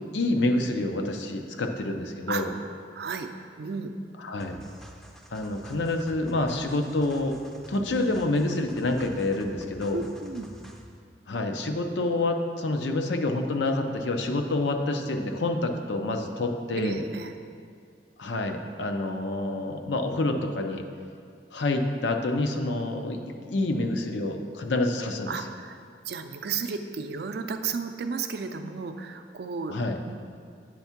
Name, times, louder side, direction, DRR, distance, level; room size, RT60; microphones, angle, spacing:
voice 1, 0.1-2.5 4.2-4.6 5.3-7.4 7.7-10.0 11.3-17.0 18.2-20.8 21.5-25.4 29.7-30.0, left 2 dB, 90° left, 5 dB, 0.6 m, -27 dB
voice 2, 2.9-3.3 3.6-3.9 9.9-10.5 16.8-17.3 25.3-25.8 26.0-29.7 30.1-30.2, right 5 dB, 60° right, 7 dB, 0.4 m, -33 dB
sound 1, 4.4-11.0, equal, 5° left, 0.4 m, -47 dB
8.5 x 3.5 x 5.8 m, 2.2 s
head